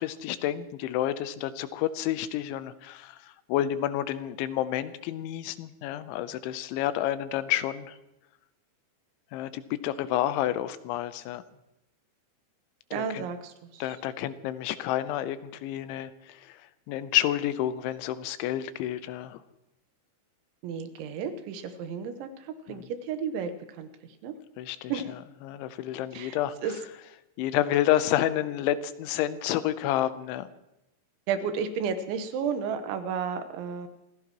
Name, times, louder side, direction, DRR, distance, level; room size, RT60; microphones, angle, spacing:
voice 1, 0.0-3.2 3.5-8.0 9.3-11.4 13.0-13.3 13.8-16.5 16.9-19.4 22.7-22.9 24.6-24.9 25.4-26.5 27.4-30.5, left 12 dB, 85° left, 13 dB, 3.1 m, -29 dB
voice 2, 12.9-13.8 20.6-23.9 24.2-24.3 24.9-25.1 26.1-26.8 31.3-33.9, right 6 dB, 85° right, 8 dB, 3.4 m, -32 dB
26.5 x 16.0 x 3.0 m, 0.90 s
omnidirectional pair, 5.4 m